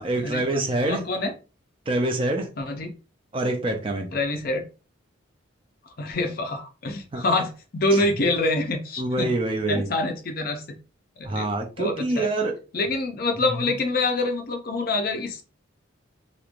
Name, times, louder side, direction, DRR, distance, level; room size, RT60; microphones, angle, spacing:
voice 1, 0.0-1.0 1.9-2.5 3.3-4.2 7.1-7.2 7.9-8.0 9.0-9.9 11.2-12.6 13.4-13.5, right 2 dB, 25° right, 0.4 m, -26 dB
voice 2, 0.9-1.3 2.6-2.9 4.1-4.6 6.0-9.3 9.7-10.6 11.2-11.5 11.8-12.3 12.7-15.4, left 2 dB, 45° left, 0.4 m, -26 dB
3.0 x 2.1 x 2.4 m
head